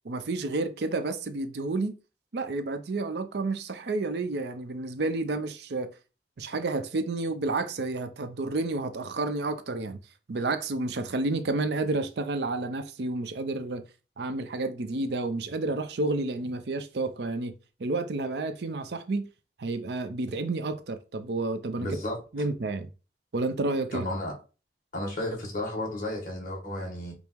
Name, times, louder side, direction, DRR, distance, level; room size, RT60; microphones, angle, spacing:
voice 1, 0.0-1.9 2.3-5.9 6.4-10.0 10.3-13.8 14.2-17.5 17.8-19.3 19.6-21.9 22.3-22.9 23.3-24.1, right 2 dB, 65° right, 0.5 m, -30 dB
voice 2, 21.8-22.2 23.9-24.3 24.9-27.1, left 1 dB, 45° left, 1.9 m, -33 dB
5.3 x 2.0 x 4.5 m
head